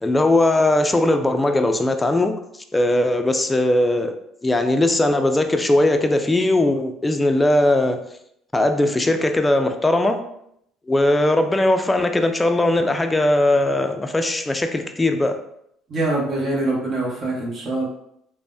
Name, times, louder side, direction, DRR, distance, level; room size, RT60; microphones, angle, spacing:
voice 1, 0.0-2.4 2.7-4.2 4.4-8.0 8.5-10.2 10.9-15.4, left 1 dB, 15° left, 6 dB, 0.3 m, -19 dB
voice 2, 15.9-17.8, right 2 dB, 45° right, -3 dB, 1.1 m, -24 dB
3.2 x 2.0 x 2.6 m, 0.74 s
supercardioid pair, 75°, 0 cm